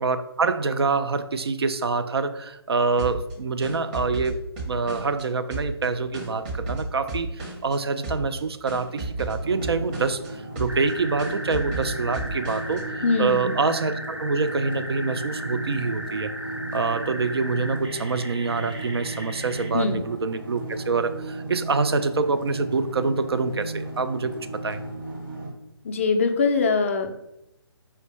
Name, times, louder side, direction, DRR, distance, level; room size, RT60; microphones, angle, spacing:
voice 1, 0.0-16.3 16.7-24.8, right 4 dB, 65° right, 10 dB, 0.4 m, -26 dB
sound 1, 3.0-5.2 5.5-7.8 8.0-8.4 8.7-10.3 10.6-10.9 11.2-12.8, right 2 dB, 20° right, 0.8 m, -33 dB
sound 2, 9.4-25.5, right 2 dB, 50° right, 1.2 m, -35 dB
sound 3, 10.7-19.7, equal, 85° right, 0.8 m, -37 dB
voice 2, 13.0-13.6 19.7-20.0 25.8-27.1, left 4 dB, 30° left, 6 dB, 0.3 m, -22 dB
4.4 x 2.1 x 3.1 m, 0.86 s
figure-of-eight pair, 140°, 14 cm